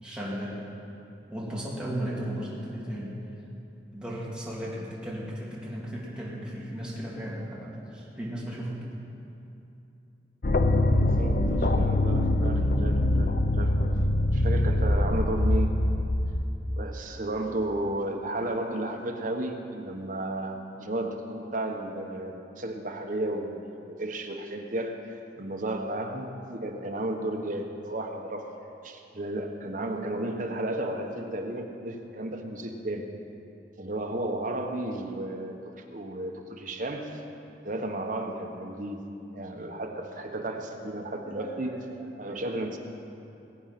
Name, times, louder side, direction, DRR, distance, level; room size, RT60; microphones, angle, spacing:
voice 1, 0.0-0.6 1.3-3.1 3.9-8.8 40.8-42.4, equal, 5° right, -6 dB, 3.0 m, -36 dB
sound 1, 10.4-16.4, left 1 dB, 50° left, 0.7 m, -24 dB
voice 2, 10.8-13.7 14.3-15.8 16.8-28.5 28.8-33.1 33.8-37.2 37.6-39.0 39.3-41.8 42.2-42.8, right 1 dB, 45° right, 3 dB, 1.3 m, -33 dB
21.5 x 8.7 x 6.0 m, 2.8 s
head